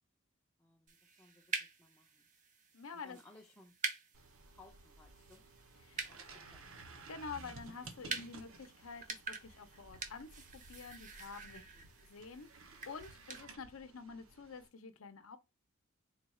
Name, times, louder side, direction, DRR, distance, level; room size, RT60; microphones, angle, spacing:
voice 1, 0.6-2.3 2.9-3.7 4.5-5.4 6.1-6.8 11.5-11.9, left 2 dB, 10° left, 0.5 m, -62 dB
sound 1, 0.9-13.4, right 4 dB, 35° right, 0.7 m, -47 dB
voice 2, 2.7-3.2 5.8-6.1 7.1-11.6 12.1-15.4, left 5 dB, 75° left, 0.6 m, -48 dB
sound 2, 4.1-14.7, right 3 dB, 70° right, 0.8 m, -56 dB
3.9 x 2.3 x 4.2 m
head